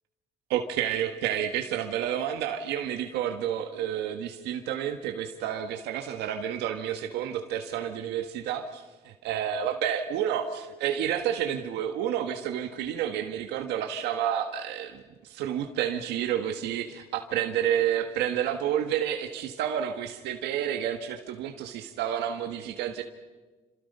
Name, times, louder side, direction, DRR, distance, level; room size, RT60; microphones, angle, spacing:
voice 1, 0.5-23.0, right 10 dB, 85° right, 5 dB, 1.5 m, -30 dB
28.0 x 26.5 x 5.5 m, 1.3 s
cardioid pair, 110°, 17 cm